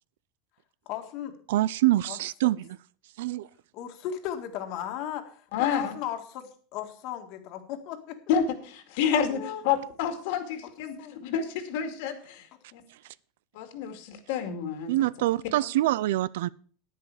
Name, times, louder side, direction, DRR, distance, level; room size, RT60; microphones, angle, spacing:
voice 1, 0.9-1.4 2.1-2.2 2.4-2.5 3.7-8.2 9.3-9.6 10.6-10.7 11.0-11.2 15.6-15.7, left 10 dB, 40° left, 1.8 m, -36 dB
voice 2, 1.5-2.8 3.2-3.5 14.9-16.5, right 15 dB, 80° right, 0.5 m, -25 dB
voice 3, 5.5-5.9 8.3-12.4 12.7-12.8 13.6-14.9, left 7 dB, 60° left, 2.2 m, -29 dB
11.0 x 10.0 x 4.9 m
supercardioid pair, 175°, 0 cm